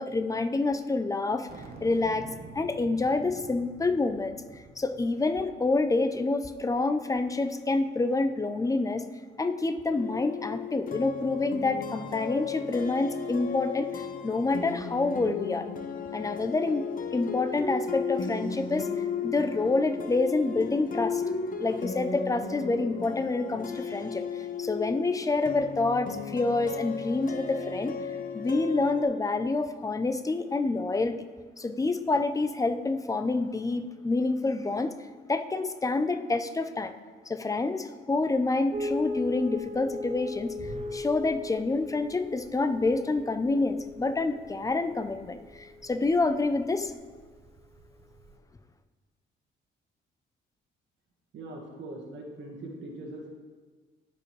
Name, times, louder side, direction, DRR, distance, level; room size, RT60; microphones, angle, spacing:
voice 1, 0.0-1.5 1.8-2.3 2.5-9.0 9.4-15.7 16.1-21.2 21.6-24.2 24.6-27.9 28.3-31.2 31.6-34.9 35.3-36.9 37.3-40.5 40.9-46.9, left 3 dB, 15° left, 9 dB, 0.6 m, -27 dB
sound 1, 1.5-6.2, right 3 dB, 50° right, 1.1 m, -48 dB
sound 2, 9.9-29.0, left 5 dB, 45° left, 0.8 m, -35 dB
sound 3, 38.7-48.3, left 2 dB, 30° right, 0.8 m, -39 dB
voice 2, 51.3-53.3, right 1 dB, 65° right, -1 dB, 1.7 m, -41 dB
15.0 x 5.1 x 3.3 m, 1.4 s
cardioid pair, 90°, 20 cm